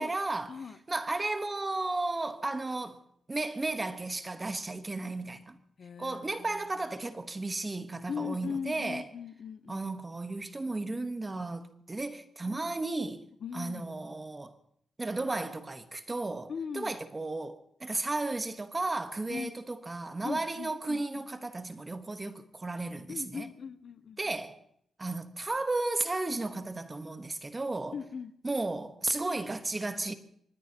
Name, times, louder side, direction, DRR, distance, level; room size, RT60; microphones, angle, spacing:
voice 1, 0.0-0.6 0.9-3.0 3.3-5.6 6.0-9.1 9.7-13.2 13.5-14.5 15.0-23.5 24.2-24.6 25.0-28.0 28.4-30.1, right 2 dB, 20° right, 1.2 m, -34 dB
voice 2, 5.8-6.5 8.1-9.9 12.4-12.7 13.4-13.9 16.5-17.0 19.3-19.5 20.2-21.2 23.1-24.2 27.9-28.3, left 6 dB, 50° left, 0.7 m, -39 dB
24.5 x 20.0 x 2.9 m
wide cardioid pair, 160°, 0 cm